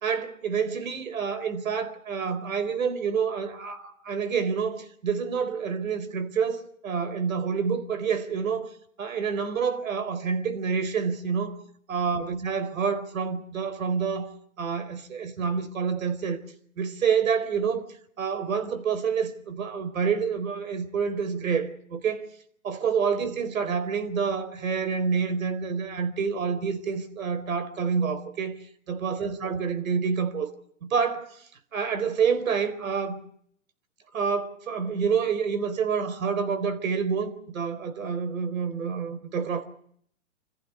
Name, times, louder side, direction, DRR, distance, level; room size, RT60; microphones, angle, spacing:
voice 1, 0.0-8.7 9.0-11.6 11.9-14.3 14.6-16.4 16.8-17.8 18.2-22.3 22.6-28.5 28.9-30.5 30.8-31.4 31.7-33.2 34.1-39.6, right 6 dB, 75° right, 4.3 m, -28 dB
26.5 x 15.0 x 9.8 m
hypercardioid pair, 155°, 41 cm